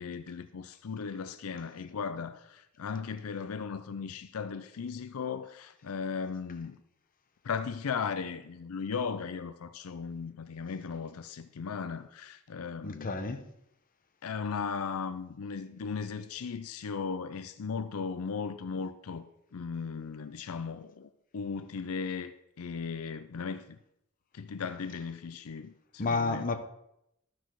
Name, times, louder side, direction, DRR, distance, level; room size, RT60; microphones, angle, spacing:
voice 1, 0.0-6.8 7.4-13.2 14.2-19.2 19.5-23.8 24.3-26.5, left 5 dB, 85° left, 0.5 m, -37 dB
voice 2, 12.8-13.4 26.0-26.6, left 3 dB, 40° left, 0.9 m, -30 dB
12.5 x 6.2 x 4.6 m
head